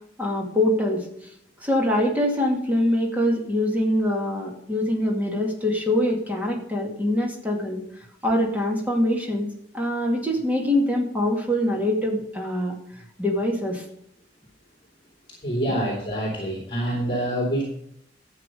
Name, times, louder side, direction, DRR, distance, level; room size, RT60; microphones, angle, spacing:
voice 1, 0.2-1.0 1.6-7.8 8.2-9.5 9.7-12.8 13.2-13.8, left 1 dB, 10° right, -1 dB, 2.3 m, -24 dB
voice 2, 15.4-17.6, right 1 dB, 30° left, -3 dB, 3.0 m, -26 dB
12.5 x 7.7 x 5.2 m, 0.74 s
head